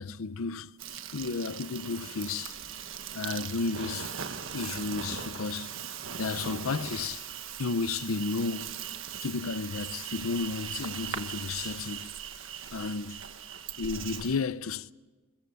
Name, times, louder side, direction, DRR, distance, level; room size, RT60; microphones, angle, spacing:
voice 1, 0.0-2.6 3.1-4.1 4.5-5.8 6.2-7.3 7.6-8.8 9.2-12.1 12.7-13.2 13.8-14.9, left 4 dB, 85° left, 0.6 m, -33 dB
Insect, 0.8-14.4, right 8 dB, 65° right, 1.4 m, -39 dB
22.0 x 21.5 x 6.9 m
head